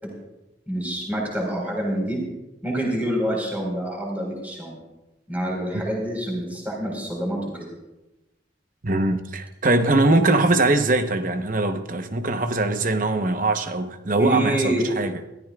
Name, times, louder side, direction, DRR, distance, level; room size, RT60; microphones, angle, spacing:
voice 1, 0.7-2.2 2.6-4.8 5.3-7.7 14.2-14.8, right 1 dB, 10° right, 4.3 m, -27 dB
voice 2, 8.8-15.1, right 2 dB, 45° right, 0.9 m, -21 dB
22.5 x 14.0 x 2.4 m
head